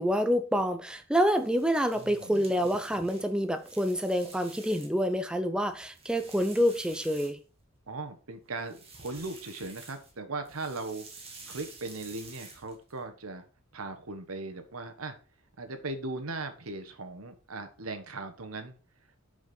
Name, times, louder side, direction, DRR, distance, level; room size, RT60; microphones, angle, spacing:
voice 1, 0.0-7.4, equal, 5° right, 0.5 m, -27 dB
sound 1, 1.3-5.1 5.5-7.8 8.5-10.2 10.4-13.0, right 3 dB, 30° right, 1.7 m, -50 dB
voice 2, 1.9-2.4 7.9-11.1 11.5-13.5 13.7-15.1 15.6-18.7, right 3 dB, 80° right, 1.2 m, -38 dB
6.5 x 5.1 x 5.4 m
head